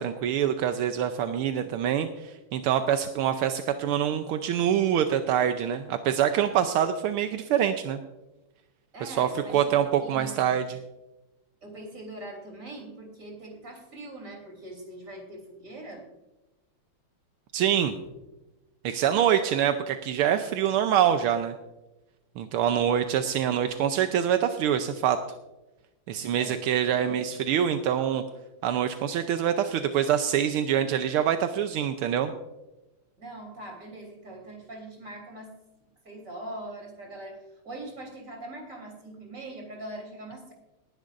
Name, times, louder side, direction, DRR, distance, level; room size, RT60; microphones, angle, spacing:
voice 1, 0.0-8.0 9.0-10.8 17.5-17.9 18.8-21.5 22.4-25.2 26.1-28.2 28.6-32.3, right 9 dB, 80° right, 7 dB, 1.6 m, -25 dB
voice 2, 8.9-10.6 11.6-16.0 19.3-19.6 22.6-23.0 26.4-27.2 33.2-35.6 35.8-40.5, right 1 dB, 35° right, 1 dB, 3.5 m, -42 dB
19.0 x 12.0 x 2.5 m, 1.0 s
omnidirectional pair, 2.4 m